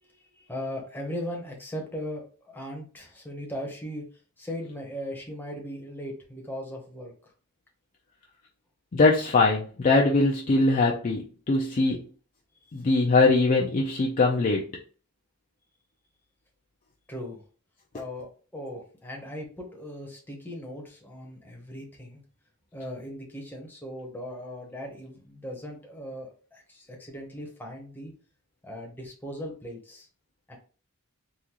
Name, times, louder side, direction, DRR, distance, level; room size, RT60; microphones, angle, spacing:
voice 1, 0.0-4.0 4.4-7.3 17.1-17.4 17.9-22.2 22.7-28.1 28.6-30.1 30.5-30.6, equal, 10° left, 0 dB, 0.8 m, -38 dB
voice 2, 8.9-12.0 12.7-14.7, left 3 dB, 35° left, -2 dB, 0.4 m, -22 dB
3.7 x 2.4 x 2.9 m, 0.38 s
head